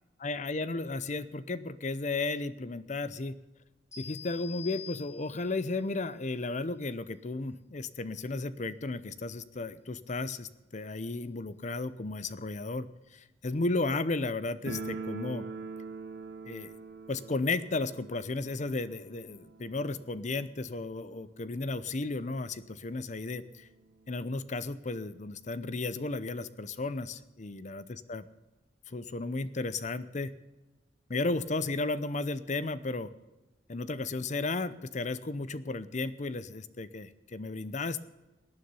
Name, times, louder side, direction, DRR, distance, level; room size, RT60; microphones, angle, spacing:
voice 1, 0.2-3.4 4.0-15.5 16.4-16.8 17.1-23.7 24.1-28.3 28.9-30.3 31.1-33.1 33.7-38.0, left 3 dB, 40° left, 14 dB, 0.7 m, -34 dB
sound 1, 3.9-5.7, left 8 dB, 15° left, 6.0 m, -46 dB
sound 2, 14.7-21.4 21.6-21.7 22.0-22.1 22.8-22.9 23.2-24.4, right 3 dB, 65° right, 1.3 m, -43 dB
18.0 x 9.8 x 5.6 m, 1.1 s
head